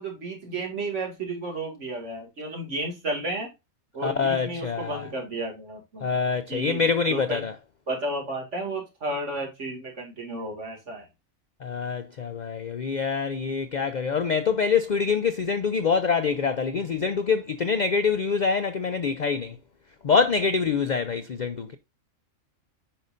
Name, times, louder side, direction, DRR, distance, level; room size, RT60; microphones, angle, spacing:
voice 1, 0.0-3.5 3.9-6.1 6.5-6.8 7.1-7.4 7.9-11.1, right 2 dB, 55° right, 2.4 m, -32 dB
voice 2, 4.0-5.1 6.0-7.5 11.6-19.6 20.0-21.8, left 5 dB, 80° left, 0.4 m, -25 dB
8.5 x 5.4 x 2.5 m
omnidirectional pair, 1.5 m